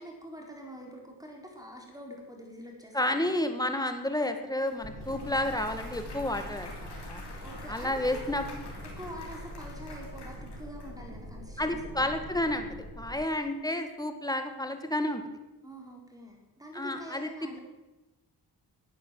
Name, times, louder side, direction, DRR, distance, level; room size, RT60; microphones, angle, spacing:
voice 1, 0.0-3.6 7.4-8.4 9.0-12.1 15.6-17.6, equal, 10° right, 0 dB, 4.4 m, -45 dB
voice 2, 2.9-6.7 7.1-7.2 7.7-8.4 11.6-15.2 16.7-17.3, left 1 dB, 10° left, 7 dB, 1.8 m, -30 dB
Clapping / Cheering / Applause, 4.7-10.9, left 3 dB, 75° left, 3.1 m, -48 dB
sound 1, 4.8-13.1, equal, 35° right, 4.3 m, -43 dB
12.0 x 9.1 x 7.8 m, 1.1 s
cardioid pair, 60°, 40 cm